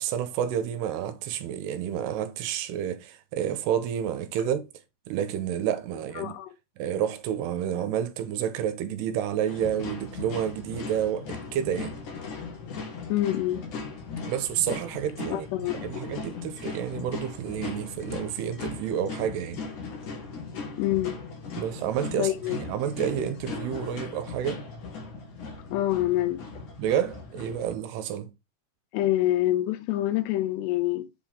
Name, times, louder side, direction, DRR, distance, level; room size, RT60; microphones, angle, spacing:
voice 1, 0.0-4.7 5.1-6.3 6.8-12.0 14.3-15.5 15.7-19.6 21.6-24.6 26.8-28.3, right 9 dB, 80° right, 2.8 m, -29 dB
voice 2, 6.2-6.5 13.1-13.6 15.3-15.7 20.8-21.2 22.2-22.6 25.7-26.4 28.9-31.1, left 14 dB, 85° left, 2.8 m, -26 dB
sound 1, 9.5-27.7, left 4 dB, 55° left, 2.7 m, -38 dB
7.8 x 4.5 x 3.6 m
omnidirectional pair, 4.8 m